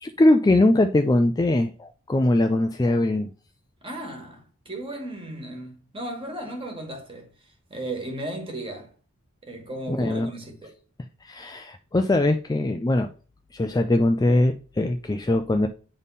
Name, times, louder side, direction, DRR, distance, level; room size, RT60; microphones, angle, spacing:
voice 1, 0.0-3.3 9.9-10.3 11.2-13.1 13.5-15.7, left 1 dB, 15° left, 0.3 m, -21 dB
voice 2, 3.8-7.3 7.7-8.9 9.4-10.7, right 1 dB, 25° right, 1.7 m, -35 dB
9.6 x 3.6 x 4.1 m
head